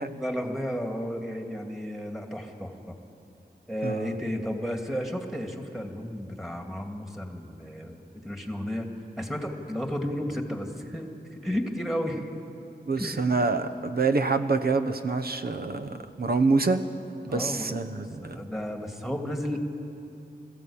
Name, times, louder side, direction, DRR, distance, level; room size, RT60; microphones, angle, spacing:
voice 1, 0.2-3.0 3.7-8.9 9.2-12.3 13.0-13.2 17.3-19.6, equal, ahead, 3 dB, 2.2 m, -33 dB
voice 2, 3.8-4.2 12.9-16.8 17.2-18.4, right 3 dB, 65° right, 9 dB, 1.1 m, -26 dB
21.0 x 14.5 x 8.7 m, 2.8 s
wide cardioid pair, 85°, 17 cm